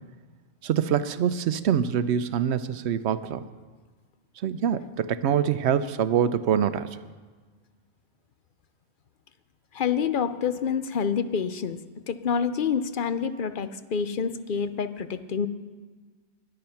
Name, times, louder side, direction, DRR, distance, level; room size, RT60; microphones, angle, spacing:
voice 1, 0.6-3.4 4.4-7.0, right 8 dB, 90° right, 13 dB, 0.9 m, -25 dB
voice 2, 9.7-11.8 12.1-15.5, left 6 dB, 55° left, 11 dB, 0.7 m, -27 dB
21.0 x 7.9 x 5.7 m, 1.4 s
omnidirectional pair, 1.1 m